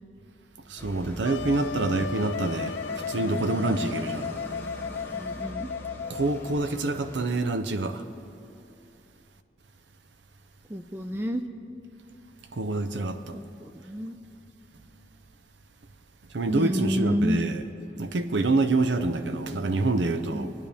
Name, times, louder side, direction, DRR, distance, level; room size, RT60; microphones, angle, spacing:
voice 1, 0.7-2.8 3.1-4.3 6.1-8.0 12.6-13.3 16.3-17.6 18.0-20.5, right 2 dB, 85° right, 0.7 m, -26 dB
sound 1, 0.8-7.3, equal, 10° left, 0.8 m, -42 dB
Wind instrument woodwind instrument, 1.2-6.7, left 6 dB, 80° left, 0.4 m, -35 dB
voice 2, 5.1-5.7 10.7-11.4 13.3-14.2 16.5-17.4 20.3-20.5, equal, 15° right, 0.4 m, -29 dB
24.0 x 9.9 x 3.5 m
head